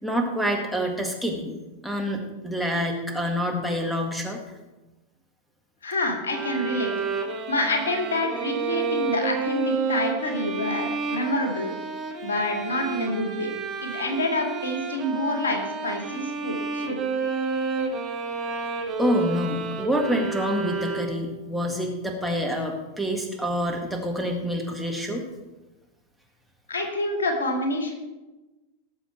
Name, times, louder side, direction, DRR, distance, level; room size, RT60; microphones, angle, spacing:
voice 1, 0.0-1.5 1.8-4.4 19.0-25.2, equal, ahead, 3 dB, 1.9 m, -27 dB
voice 2, 5.8-7.1 7.5-11.7 12.2-13.5 13.8-17.0 26.7-27.9, left 1 dB, 70° left, 3 dB, 2.2 m, -27 dB
sound 1, 6.3-21.4, right 4 dB, 30° right, 1.7 m, -30 dB
18.5 x 7.1 x 4.5 m, 1.1 s
figure-of-eight pair, 90°, 0 cm